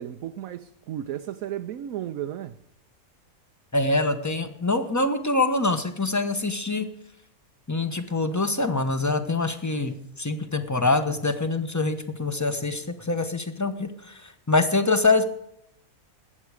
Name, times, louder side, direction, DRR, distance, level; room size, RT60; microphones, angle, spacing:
voice 1, 0.0-2.6, right 11 dB, 75° right, 1.1 m, -34 dB
voice 2, 3.7-6.9 7.7-15.3, left 3 dB, 15° left, 0.9 m, -25 dB
20.0 x 8.2 x 4.9 m
omnidirectional pair, 1.5 m